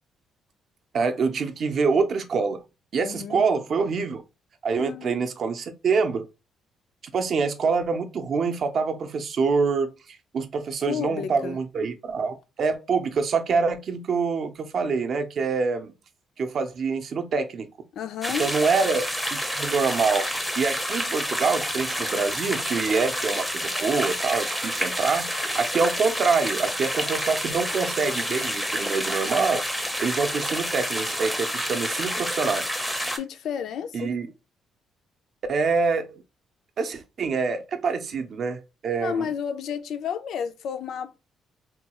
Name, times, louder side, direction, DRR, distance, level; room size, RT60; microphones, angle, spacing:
voice 1, 0.9-2.6 2.9-4.2 4.6-6.2 7.1-9.9 10.3-15.9 16.4-17.7 18.4-19.0 19.3-20.3 20.6-23.5 23.8-32.6 33.9-34.3 35.5-36.2 36.8-39.3, right 4 dB, 45° right, 0.5 m, -25 dB
voice 2, 3.0-3.4 4.8-5.2 10.9-11.6 17.9-18.5 33.2-34.1 39.0-41.2, left 7 dB, 65° left, 0.4 m, -31 dB
sound 1, 18.2-33.2, equal, 5° left, 0.5 m, -29 dB
3.7 x 2.3 x 2.8 m
cardioid pair, 150°, 0 cm